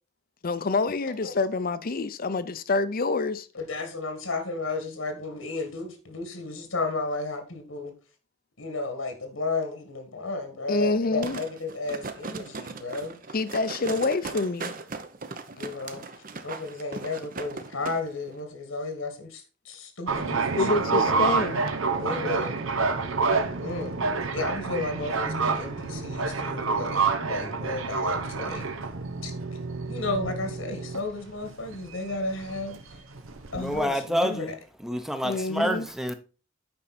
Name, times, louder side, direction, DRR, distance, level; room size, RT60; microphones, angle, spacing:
voice 1, 0.4-3.5 10.7-11.4 13.3-14.7 20.6-21.6 35.2-35.9, left 3 dB, 45° left, 0.6 m, -27 dB
voice 2, 3.5-7.9 8.6-13.2 15.6-16.0 16.4-20.7 21.0-21.3 21.9-22.6 23.3-24.0 24.3-28.7 29.2-29.3 29.9-33.0 33.5-34.5, left 3 dB, 85° left, 1.9 m, -33 dB
sound 1, 11.2-18.0 18.3-18.4, right 4 dB, 45° right, 0.8 m, -38 dB
sound 2, 20.1-33.8, right 4 dB, 85° right, 0.9 m, -28 dB
voice 3, 33.5-34.5 34.8-36.1, equal, ahead, 0.7 m, -28 dB
8.8 x 5.3 x 4.3 m
head